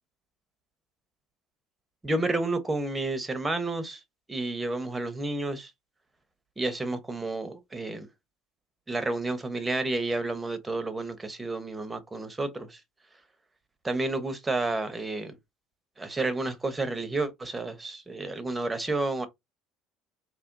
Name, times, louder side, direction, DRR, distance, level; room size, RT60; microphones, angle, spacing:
voice 1, 2.0-4.0 4.3-5.7 6.6-8.1 8.9-12.8 13.8-15.3 16.0-19.3, right 2 dB, 15° right, 1.0 m, -30 dB
4.2 x 3.0 x 2.6 m
supercardioid pair, 90°, 0 cm